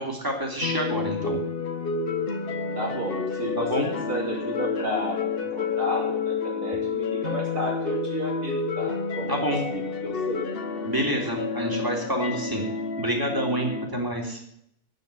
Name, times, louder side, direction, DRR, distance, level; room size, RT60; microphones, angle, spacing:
voice 1, 0.0-1.4 3.6-3.9 9.3-9.6 10.8-12.6 13.0-14.4, equal, 15° right, 0 dB, 3.0 m, -27 dB
sound 1, 0.6-13.9, left 5 dB, 50° left, 1.0 m, -30 dB
voice 2, 2.7-10.4, equal, 80° right, -2 dB, 4.3 m, -32 dB
8.9 x 8.2 x 9.0 m, 0.72 s
omnidirectional pair, 1.4 m